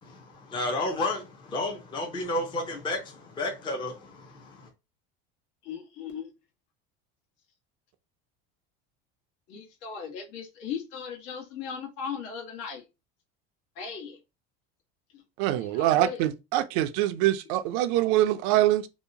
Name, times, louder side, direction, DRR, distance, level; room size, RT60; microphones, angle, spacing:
voice 1, 0.0-4.7, left 2 dB, 15° left, 0.5 m, -32 dB
voice 2, 5.6-6.3 9.5-12.8 13.8-14.2 15.6-16.2, left 7 dB, 75° left, 1.1 m, -37 dB
voice 3, 15.4-18.9, right 14 dB, 65° right, 0.4 m, -24 dB
2.8 x 2.0 x 2.6 m
cardioid pair, 135°, 29 cm